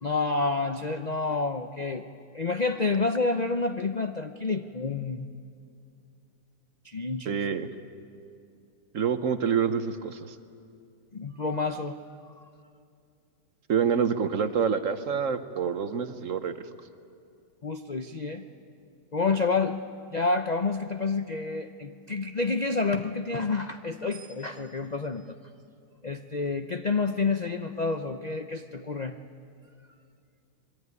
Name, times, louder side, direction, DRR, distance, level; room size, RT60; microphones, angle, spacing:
voice 1, 0.0-2.1 2.3-5.3 6.8-7.4 11.1-12.0 17.6-18.4 19.1-19.8 20.1-25.4 26.0-29.2, left 3 dB, 65° left, 7 dB, 0.4 m, -29 dB
voice 2, 7.3-7.7 8.9-10.3 13.7-16.5, right 7 dB, 50° right, 10 dB, 1.1 m, -27 dB
25.5 x 21.5 x 9.6 m, 2.4 s
omnidirectional pair, 1.9 m